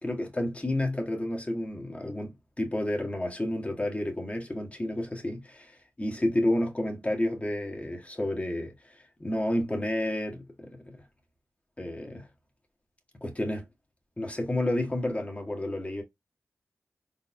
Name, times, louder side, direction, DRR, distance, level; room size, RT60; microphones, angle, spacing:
voice 1, 0.0-8.7 9.2-11.0 11.8-12.3 13.2-13.6 14.2-16.0, left 1 dB, 25° left, 1.9 m, -30 dB
4.1 x 4.0 x 2.3 m
cardioid pair, 55°, 6 cm